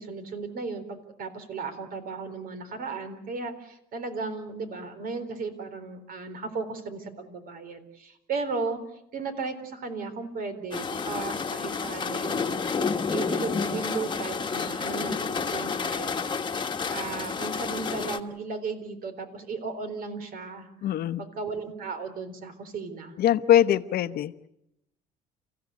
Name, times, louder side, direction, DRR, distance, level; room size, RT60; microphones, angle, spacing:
voice 1, 0.0-20.9 21.2-23.2, right 4 dB, 60° right, 9 dB, 3.9 m, -35 dB
sound 1, 10.7-18.2, left 5 dB, 25° left, 1.4 m, -30 dB
voice 2, 20.8-21.2 23.2-24.3, left 11 dB, 65° left, 13 dB, 0.9 m, -22 dB
29.5 x 15.5 x 8.3 m, 0.83 s
cardioid pair, 110°, 17 cm